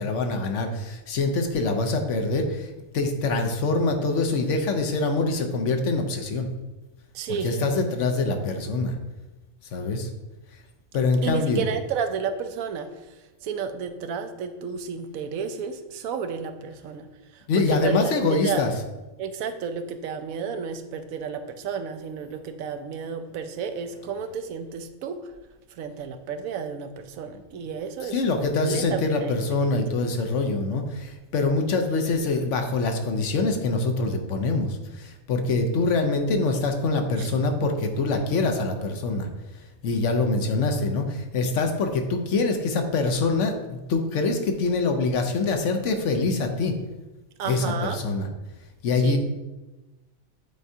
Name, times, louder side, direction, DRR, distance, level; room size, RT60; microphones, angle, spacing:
voice 1, 0.0-2.7 2.9-6.5 7.3-8.9 9.7-10.1 10.9-11.6 17.5-18.7 28.1-39.3 39.8-46.7 47.5-48.3 48.8-49.2, left 3 dB, 65° left, 5 dB, 1.0 m, -24 dB
voice 2, 7.1-7.6 11.2-12.9 13.4-18.7 19.2-25.3 25.7-29.7 37.2-37.3 47.4-48.0 49.0-49.2, right 6 dB, 85° right, 8 dB, 1.0 m, -32 dB
8.2 x 4.4 x 2.7 m, 1.1 s
omnidirectional pair, 1.4 m